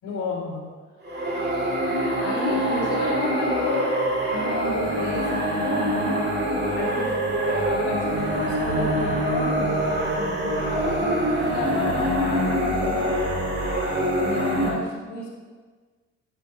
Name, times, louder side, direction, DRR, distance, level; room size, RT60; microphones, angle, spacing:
voice 1, 0.0-0.7 2.2-3.9 4.3-6.4 6.8-7.1 7.4-13.2 14.2-15.3, left 3 dB, 75° left, -5 dB, 2.2 m, -31 dB
sound 1, 1.0-14.7, right 1 dB, 35° right, 1.9 m, -24 dB
9.0 x 7.2 x 2.9 m, 1.4 s
cardioid pair, 90°, 30 cm